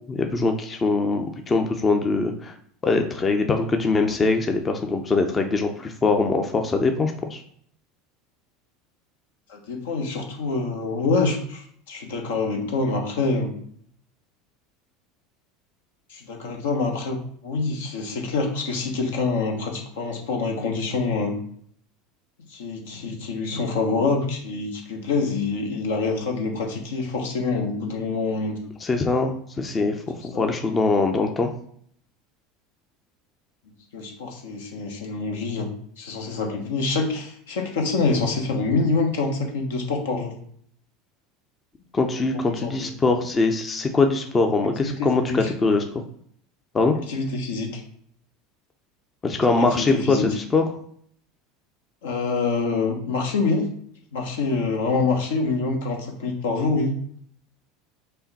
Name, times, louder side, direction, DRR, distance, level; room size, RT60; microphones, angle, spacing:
voice 1, 0.1-2.5 2.8-7.4 28.8-31.5 41.9-45.8 46.7-47.0 49.2-50.6, left 3 dB, 25° left, 5 dB, 0.6 m, -22 dB
voice 2, 9.5-13.5 16.1-21.4 22.5-28.5 30.3-30.5 33.9-35.7 36.0-40.3 42.1-42.9 44.6-45.5 47.1-47.8 49.5-50.3 52.0-53.7 54.1-56.9, left 3 dB, 75° left, 2 dB, 1.0 m, -26 dB
5.5 x 2.2 x 4.1 m, 0.63 s
hypercardioid pair, 80°, 0 cm